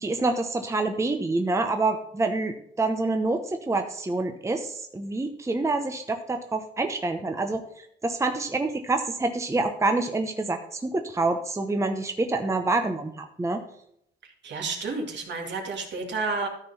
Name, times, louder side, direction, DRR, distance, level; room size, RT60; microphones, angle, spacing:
voice 1, 0.0-7.6 8.0-13.1 13.4-13.6, right 2 dB, 15° right, 5 dB, 0.8 m, -27 dB
voice 2, 14.4-16.5, right 3 dB, 65° right, 2 dB, 2.2 m, -30 dB
13.0 x 4.5 x 5.5 m, 0.72 s
cardioid pair, 90°, 20 cm